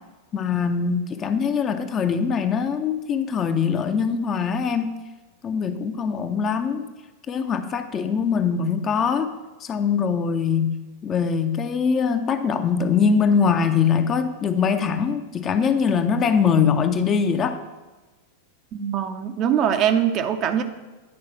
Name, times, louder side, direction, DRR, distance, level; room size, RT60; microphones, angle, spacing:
voice 1, 0.3-4.9 5.4-6.9 7.3-9.3 9.6-10.7 11.0-17.6, left 6 dB, 25° left, 8 dB, 0.6 m, -22 dB
voice 2, 18.7-20.6, right 9 dB, 35° right, 8 dB, 0.6 m, -22 dB
9.6 x 4.7 x 5.7 m, 1.2 s
figure-of-eight pair, 90°, 0 cm